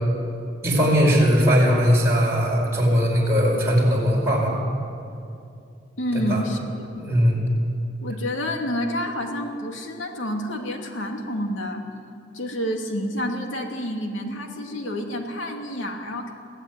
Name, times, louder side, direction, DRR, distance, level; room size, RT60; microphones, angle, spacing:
voice 1, 0.6-4.5 6.1-6.4 7.0-7.4, equal, 15° right, -5 dB, 5.2 m, -19 dB
voice 2, 6.0-6.9 8.0-11.8 12.3-16.3, equal, 90° left, 2 dB, 2.7 m, -29 dB
23.0 x 15.5 x 9.4 m, 2.5 s
head